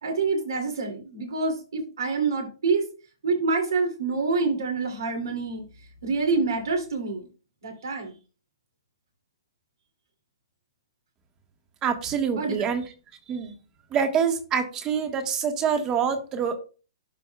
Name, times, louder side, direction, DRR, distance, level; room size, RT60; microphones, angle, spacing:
voice 1, 0.0-2.9 3.2-5.6 6.0-7.3 7.6-8.1 12.3-12.7, right 4 dB, 70° right, 3 dB, 2.5 m, -26 dB
voice 2, 11.8-12.8 13.3-13.5 13.9-16.6, right 7 dB, 25° right, 6 dB, 1.4 m, -26 dB
11.5 x 4.3 x 2.2 m, 0.34 s
hypercardioid pair, 120°, 2 cm